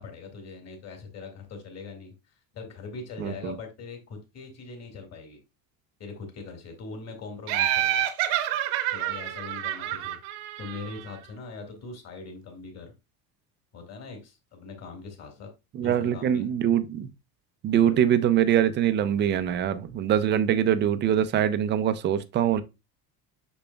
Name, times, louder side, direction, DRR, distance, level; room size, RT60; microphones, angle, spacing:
voice 1, 0.0-2.1 2.5-5.4 6.0-8.1 8.9-10.2 10.6-12.9 13.7-15.5 15.8-16.5 17.7-18.0, left 4 dB, 35° left, 2.0 m, -41 dB
voice 2, 3.2-3.5 15.7-17.1 17.6-22.6, right 10 dB, 25° right, 0.3 m, -23 dB
Laughter, 7.5-11.1, right 13 dB, 75° right, 1.0 m, -28 dB
6.9 x 6.1 x 2.2 m
cardioid pair, 145°, 46 cm